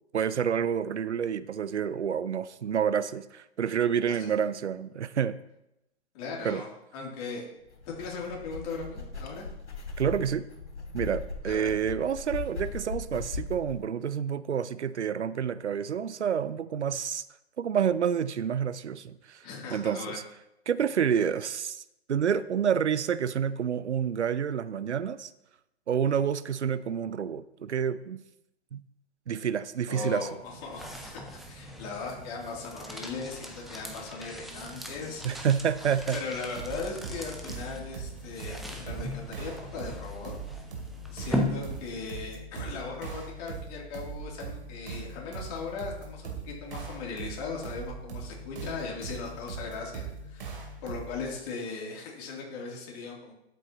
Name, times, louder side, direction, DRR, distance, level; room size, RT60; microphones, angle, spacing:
voice 1, 0.1-5.4 6.4-6.6 10.0-10.5 10.9-17.2 17.6-20.2 20.7-21.8 22.1-25.3 25.9-28.2 28.7-28.8 29.3-30.3 35.2-36.2, right 8 dB, 90° right, 16 dB, 0.6 m, -28 dB
voice 2, 6.1-6.7 6.9-7.4 7.9-9.5 11.4-11.8 19.4-20.2 29.9-35.2 36.1-40.3 41.1-53.3, left 4 dB, 35° left, -2 dB, 3.0 m, -38 dB
sound 1, 7.7-13.8, left 3 dB, 85° left, 3.1 m, -39 dB
sound 2, 30.2-42.2, left 1 dB, ahead, 0.5 m, -38 dB
sound 3, 36.6-51.3, right 4 dB, 55° right, 2.7 m, -41 dB
12.5 x 8.2 x 3.0 m, 0.85 s
hypercardioid pair, 130°, 33 cm